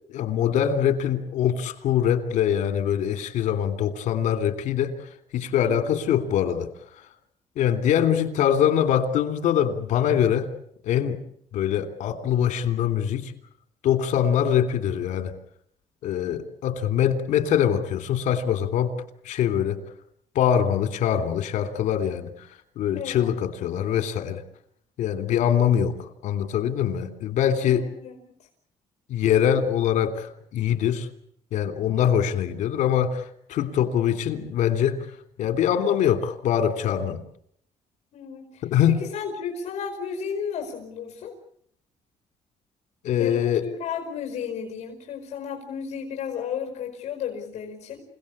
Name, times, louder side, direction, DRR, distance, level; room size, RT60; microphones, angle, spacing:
voice 1, 0.1-7.0 7.6-10.5 10.8-11.2 11.5-13.3 13.8-15.3 16.0-19.8 20.3-24.4 25.0-27.9 29.1-31.1 31.5-35.1 35.4-37.2 38.6-39.0 43.0-43.6, left 9 dB, 85° left, 8 dB, 3.0 m, -23 dB
voice 2, 5.6-6.0 22.9-23.3 27.6-28.2 38.1-41.4 43.2-48.0, left 7 dB, 65° left, 3 dB, 5.2 m, -33 dB
29.0 x 18.0 x 8.6 m, 0.68 s
cardioid pair, 155°, 12 cm